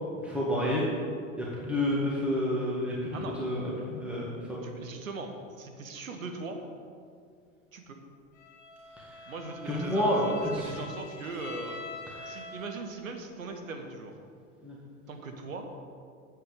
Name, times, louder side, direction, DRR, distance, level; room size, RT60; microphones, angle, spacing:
voice 1, 0.2-0.9 1.4-4.6 9.0-9.2 9.7-10.7 12.1-12.4 14.6-14.8, left 1 dB, 5° right, -6 dB, 1.8 m, -30 dB
voice 2, 4.6-6.7 7.7-8.0 9.3-11.8 12.2-14.1 15.1-15.7, right 3 dB, 85° right, 4 dB, 1.2 m, -40 dB
Bowed string instrument, 8.4-13.0, left 2 dB, 60° left, 1.7 m, -44 dB
7.9 x 7.9 x 5.1 m, 2.2 s
hypercardioid pair, 85°, 39 cm